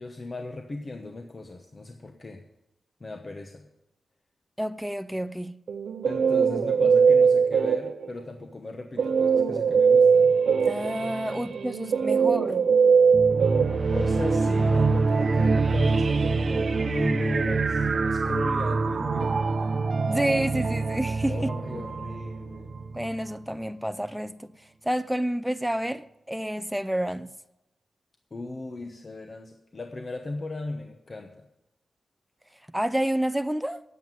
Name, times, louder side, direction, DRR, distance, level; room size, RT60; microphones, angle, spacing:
voice 1, 0.0-2.4 3.0-3.7 6.1-10.3 11.3-11.5 13.5-13.6 13.9-19.7 21.3-22.7 28.3-31.4, left 2 dB, 40° left, 1.0 m, -37 dB
voice 2, 4.6-5.5 10.6-12.7 20.1-21.5 22.9-24.5 24.8-27.3 32.7-33.8, right 1 dB, 5° right, 0.5 m, -29 dB
Guitar, 5.7-8.2 9.0-14.4, right 6 dB, 85° right, 0.6 m, -21 dB
sound 1, 13.1-23.3, right 4 dB, 50° right, 0.7 m, -25 dB
9.3 x 8.0 x 9.2 m
cardioid pair, 85°, 0 cm